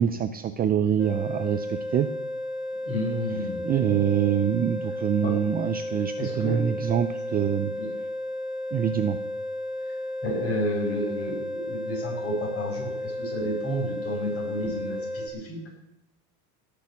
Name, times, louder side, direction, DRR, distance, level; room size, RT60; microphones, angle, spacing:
voice 1, 0.0-2.1 3.3-7.7 8.7-9.2, right 9 dB, 20° right, 10 dB, 0.5 m, -25 dB
sound 1, 1.0-15.3, left 1 dB, ahead, 3.3 m, -33 dB
voice 2, 2.8-3.6 5.2-5.3 6.2-6.7 7.8-7.9 10.2-15.6, equal, 30° left, 0 dB, 6.4 m, -31 dB
18.0 x 6.9 x 8.4 m, 0.80 s
supercardioid pair, 145°, 44 cm